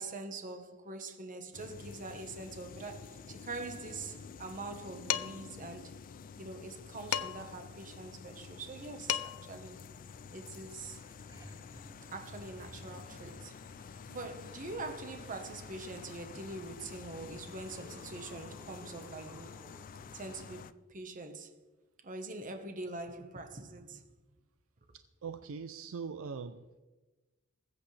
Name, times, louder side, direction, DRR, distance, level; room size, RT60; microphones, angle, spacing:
voice 1, 0.0-6.0 6.4-9.8 10.3-11.0 12.1-13.6 14.1-19.6 20.1-21.6 22.0-24.1, right 3 dB, 40° right, 1.2 m, -44 dB
sound 1, 1.5-20.7, left 5 dB, 40° left, 0.4 m, -49 dB
Dishes pots and pans, 5.1-5.5 7.1-7.6 8.7-8.8 9.1-9.5, left 10 dB, 85° left, 0.6 m, -34 dB
sound 2, 10.6-10.7 10.8-14.0 16.5-16.6 17.2-20.3 22.8-22.9, right 1 dB, 15° right, 0.7 m, -56 dB
voice 2, 25.2-26.8, right 5 dB, 65° right, 0.5 m, -41 dB
20.0 x 8.2 x 3.3 m
head